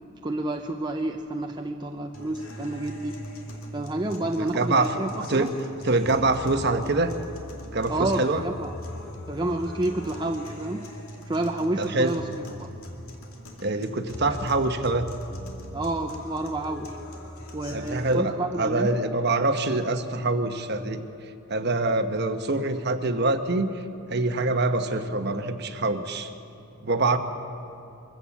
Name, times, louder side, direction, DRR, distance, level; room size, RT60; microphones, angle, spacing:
voice 1, 0.2-3.2 3.7-5.5 7.9-8.7 9.3-10.9 11.3-12.3 12.6-12.7 14.3-14.4 15.7-17.0 17.5-18.9, right 2 dB, 20° right, 3 dB, 0.6 m, -29 dB
sound 1, 2.1-18.1, equal, 75° left, 2.5 m, -42 dB
voice 2, 4.4-4.9 5.2-5.5 5.8-7.2 7.7-8.4 11.8-12.2 13.6-15.1 17.7-21.1 21.5-23.7 24.1-26.3 26.8-27.2, right 2 dB, 50° right, 7 dB, 1.1 m, -25 dB
sound 2, 8.0-9.7 11.8-11.9 12.2-13.4 14.1-15.8, left 1 dB, 55° left, 1.4 m, -42 dB
24.0 x 15.5 x 7.3 m, 2.7 s
head